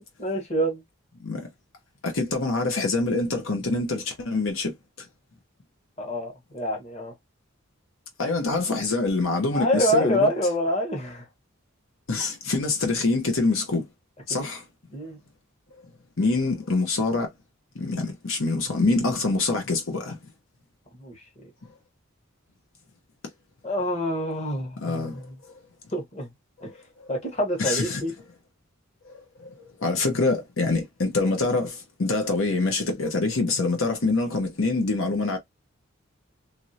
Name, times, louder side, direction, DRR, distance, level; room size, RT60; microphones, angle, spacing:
voice 1, 0.2-0.8 6.0-7.1 9.5-11.2 14.3-14.4 14.9-15.2 21.0-21.5 23.6-25.3 25.9-26.3 26.6-26.7 27.1-28.1, equal, 30° left, 1.1 m, -27 dB
voice 2, 2.0-5.1 8.2-10.3 12.1-13.8 14.3-14.6 16.2-17.3 17.7-20.2 24.8-25.3 26.6-27.1 27.6-28.0 29.0-35.4, left 3 dB, 70° left, 0.9 m, -25 dB
3.1 x 2.6 x 2.7 m
head